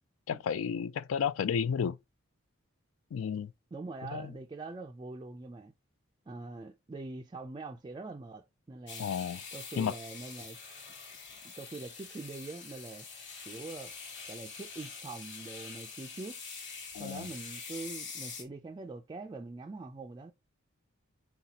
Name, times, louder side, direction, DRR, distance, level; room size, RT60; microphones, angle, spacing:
voice 1, 0.3-2.0 3.1-3.5 4.1-4.3 9.0-9.4 9.8-9.9 16.9-17.3, left 7 dB, 80° left, 0.3 m, -32 dB
voice 2, 3.7-5.7 6.3-9.1 9.5-10.6 11.4-13.1 13.5-13.9 14.3-16.4 17.0-20.3, right 3 dB, 20° right, 0.3 m, -43 dB
sound 1, 8.9-18.4, left 5 dB, 60° left, 1.3 m, -45 dB
4.2 x 4.1 x 2.8 m
head